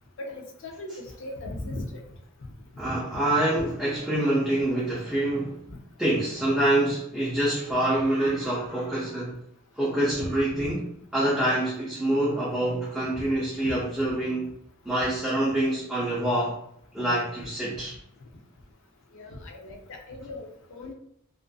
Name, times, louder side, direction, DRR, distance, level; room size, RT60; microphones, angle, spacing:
voice 1, 0.2-2.0 10.2-10.3 13.1-13.3 13.6-13.7 19.1-20.9, left 2 dB, 65° left, 2 dB, 0.5 m, -38 dB
voice 2, 2.8-5.6 6.0-9.4 9.8-10.9 11.1-14.4 14.8-16.6 16.9-17.9, right 1 dB, 5° right, -8 dB, 0.5 m, -26 dB
2.5 x 2.4 x 2.2 m, 0.72 s
head